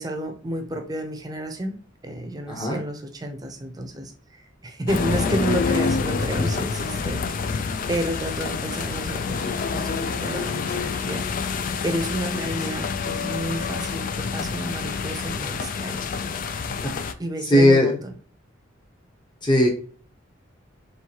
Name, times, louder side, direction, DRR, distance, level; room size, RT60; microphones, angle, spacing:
voice 1, 0.0-11.2 11.5-16.1 17.2-18.1, right 1 dB, 20° right, 5 dB, 0.7 m, -31 dB
voice 2, 2.5-2.8 16.8-16.9 17.4-17.9 19.4-19.7, left 1 dB, 25° left, 0 dB, 1.0 m, -17 dB
sound 1, 4.9-17.1, left 5 dB, 45° left, 0.3 m, -27 dB
4.7 x 3.2 x 2.9 m, 0.43 s
head